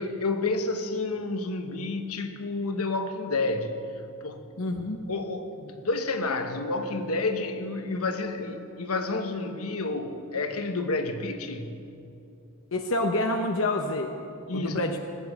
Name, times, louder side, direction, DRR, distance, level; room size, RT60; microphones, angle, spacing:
voice 1, 0.0-3.7 4.2-4.5 5.1-11.7 14.5-14.8, left 3 dB, 85° left, 7 dB, 1.2 m, -30 dB
voice 2, 4.6-5.0 12.7-14.1 14.5-15.0, left 2 dB, 65° left, 4 dB, 0.9 m, -27 dB
19.5 x 8.3 x 8.5 m, 2.7 s
head